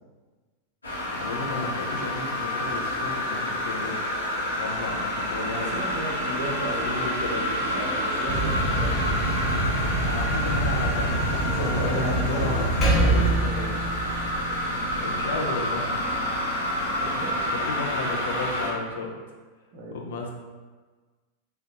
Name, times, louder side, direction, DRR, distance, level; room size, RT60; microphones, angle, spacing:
sound 1, 0.8-18.7, left 1 dB, 80° left, 0.8 m, -29 dB
voice 1, 1.1-4.0 4.6-5.7 6.3-6.5 6.8-7.7 10.0-12.7 15.0-16.2 17.5-19.2 19.9-20.3, left 3 dB, 60° left, 0 dB, 0.4 m, -33 dB
voice 2, 5.5-7.4 7.7-9.3 11.4-12.6 13.0-13.8 17.0-17.6 19.7-20.2, right 1 dB, 45° right, -5 dB, 0.6 m, -35 dB
sound 2, 8.3-13.3, right 1 dB, 30° right, 0.9 m, -27 dB
Percussion, 12.8-17.6, right 1 dB, 25° left, 0.7 m, -28 dB
3.7 x 2.2 x 2.5 m, 1.4 s
figure-of-eight pair, 90°, 0 cm